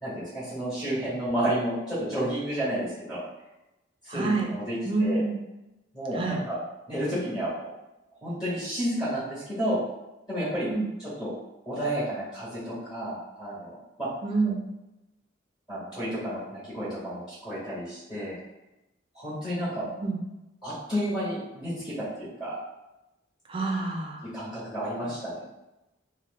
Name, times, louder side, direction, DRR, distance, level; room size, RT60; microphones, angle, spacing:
voice 1, 0.0-3.2 4.0-5.2 5.9-6.6 6.9-7.7 8.2-9.8 10.3-10.7 11.0-11.3 11.6-14.1 15.7-18.3 19.1-19.8 20.6-22.6 24.2-25.4, equal, 25° left, -13 dB, 1.3 m, -31 dB
voice 2, 4.1-4.5 4.8-5.4 6.1-6.4 10.7-10.9 14.2-14.6 20.0-20.2 23.5-24.2, right 3 dB, 25° right, 1 dB, 0.3 m, -27 dB
2.9 x 2.0 x 3.1 m, 0.97 s
head